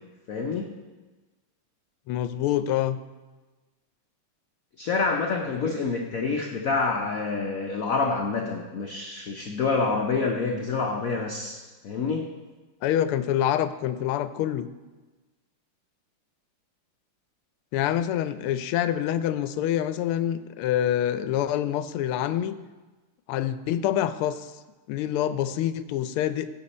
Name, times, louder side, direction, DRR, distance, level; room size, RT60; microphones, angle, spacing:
voice 1, 0.3-0.8 4.8-12.4, left 4 dB, 65° left, 2 dB, 0.8 m, -27 dB
voice 2, 2.1-3.0 5.6-5.8 12.8-14.7 17.7-22.6 23.3-24.5 24.9-26.6, left 11 dB, 85° left, 12 dB, 1.5 m, -26 dB
16.0 x 6.1 x 4.2 m, 1.2 s
omnidirectional pair, 2.4 m